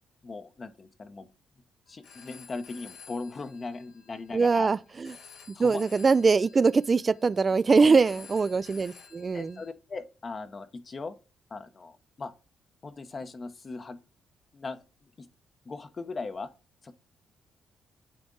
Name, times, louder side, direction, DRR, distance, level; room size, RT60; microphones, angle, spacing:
voice 1, 0.2-1.3 1.9-4.7 5.5-5.8 7.8-8.0 9.3-11.2 11.5-12.3 12.8-14.0 14.5-14.8 15.2-15.3 15.7-16.5 16.8-16.9, left 3 dB, 40° left, 0.8 m, -38 dB
Telephone, 1.9-9.7, left 6 dB, 75° left, 3.6 m, -53 dB
voice 2, 4.3-5.1 5.6-9.6, right 4 dB, 35° right, 0.3 m, -23 dB
8.6 x 3.5 x 3.8 m
cardioid pair, 80°, 0 cm